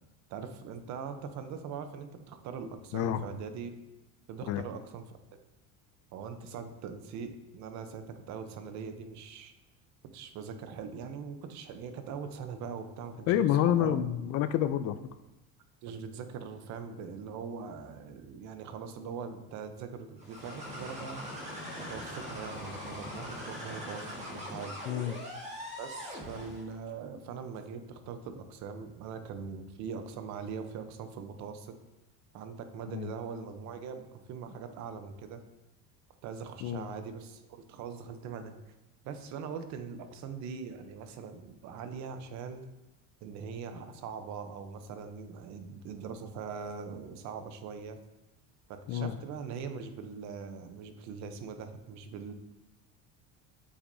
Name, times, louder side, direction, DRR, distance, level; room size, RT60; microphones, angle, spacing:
voice 1, 0.3-3.7 4.3-5.0 6.1-9.5 10.1-14.0 15.8-21.2 21.8-24.8 25.8-31.7 32.3-35.4 36.2-38.5 39.0-42.6 43.2-48.0 48.7-52.3, right 6 dB, 50° right, 8 dB, 0.8 m, -41 dB
voice 2, 13.3-15.0 24.9-25.1 32.9-33.1 36.6-36.9 48.9-49.1, left 11 dB, 45° left, 11 dB, 0.4 m, -28 dB
sound 1, 20.2-26.7, left 1 dB, 20° right, 1.6 m, -41 dB
8.0 x 6.1 x 2.7 m, 1.0 s
cardioid pair, 155°, 37 cm